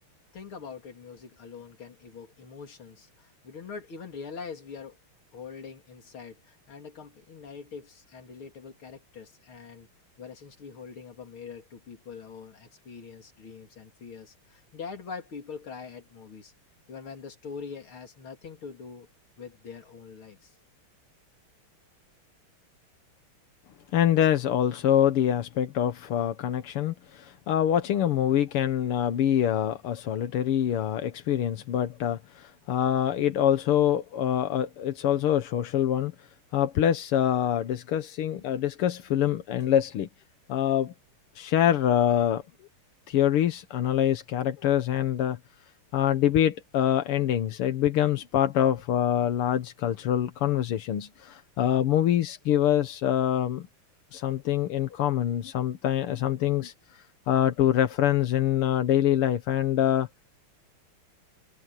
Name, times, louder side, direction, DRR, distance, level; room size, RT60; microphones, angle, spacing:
voice 1, 0.3-5.0 5.3-9.9 10.2-16.5 16.9-19.1 19.4-20.6, left 5 dB, 70° left, 3.6 m, -43 dB
voice 2, 23.9-36.1 36.5-40.1 40.5-40.9 41.4-42.4 43.1-45.4 45.9-53.7 54.1-60.1, left 10 dB, 85° left, 2.1 m, -25 dB
omnidirectional pair, 2.4 m